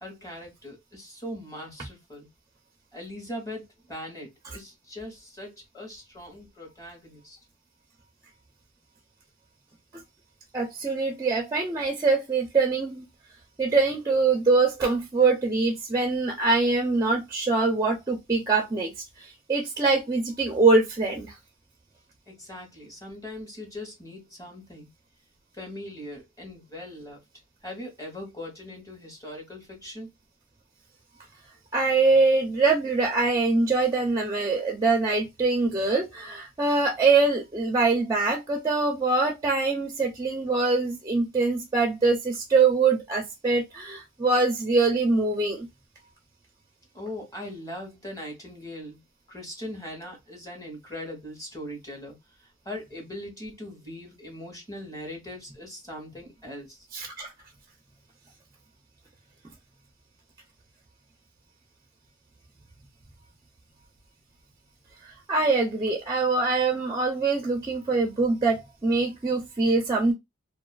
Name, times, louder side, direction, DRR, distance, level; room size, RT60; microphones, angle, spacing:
voice 1, 0.0-2.3 2.9-7.4 22.3-24.9 25.5-27.2 27.6-30.1 46.9-49.0 49.3-52.2 52.6-56.8, left 1 dB, 15° left, 1.0 m, -40 dB
voice 2, 10.5-13.1 13.6-18.9 19.2-21.4 31.7-45.7 56.9-57.3 65.0-70.1, right 3 dB, 15° right, 0.4 m, -23 dB
2.4 x 2.4 x 2.2 m
head